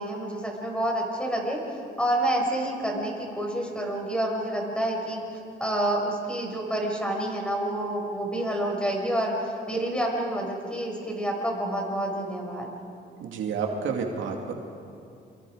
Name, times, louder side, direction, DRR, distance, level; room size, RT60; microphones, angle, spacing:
voice 1, 0.0-5.2 5.6-12.7, right 1 dB, 5° left, 0 dB, 6.2 m, -28 dB
voice 2, 13.2-14.5, right 5 dB, 75° right, 2 dB, 2.5 m, -30 dB
29.5 x 24.5 x 5.1 m, 2.5 s
cardioid pair, 90°, 20 cm